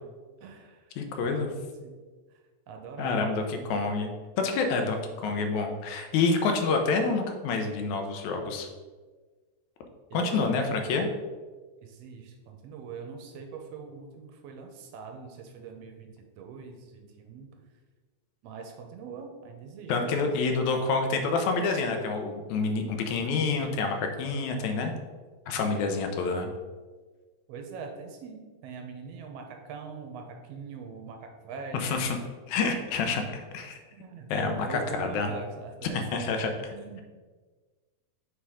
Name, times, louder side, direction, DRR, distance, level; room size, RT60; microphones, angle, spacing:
voice 1, 0.4-0.8 1.2-1.9 2.7-3.8 10.1-10.6 11.8-17.5 18.4-20.3 27.5-32.0 33.3-33.4 33.9-36.0 36.7-37.0, right 5 dB, 70° right, 3 dB, 1.7 m, -42 dB
voice 2, 1.0-1.5 3.0-4.1 4.4-8.7 10.1-11.1 19.9-24.9 25.5-26.5 31.7-32.2 32.5-33.8 34.3-35.3 35.9-36.5, left 4 dB, 75° left, 4 dB, 2.1 m, -28 dB
7.3 x 3.5 x 4.9 m, 1.4 s
omnidirectional pair, 3.4 m